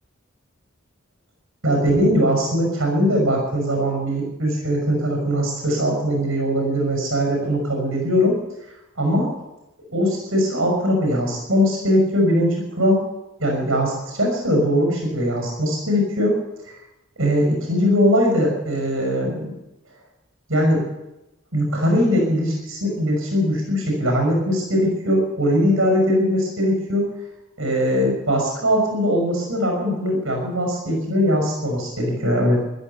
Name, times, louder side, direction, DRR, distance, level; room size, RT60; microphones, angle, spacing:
voice 1, 1.6-8.4 9.0-9.3 9.9-13.0 13.4-16.4 17.2-19.5 20.5-20.8 21.5-27.1 27.6-32.6, equal, 80° right, 1 dB, 5.9 m, -20 dB
15.5 x 12.5 x 7.0 m, 0.94 s
head